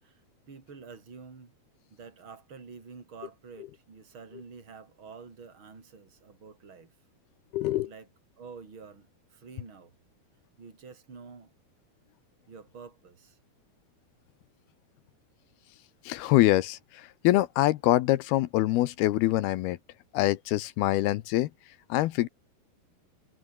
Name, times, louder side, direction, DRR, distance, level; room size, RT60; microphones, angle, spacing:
voice 1, 0.5-1.5 1.9-6.9 7.8-8.1 8.4-9.9 10.6-11.5 12.5-13.4, right 5 dB, 30° right, 5.0 m, -48 dB
voice 2, 7.5-7.9 16.1-19.8 20.1-21.5 21.9-22.3, left 16 dB, 75° left, 2.7 m, -25 dB
omnidirectional pair, 4.7 m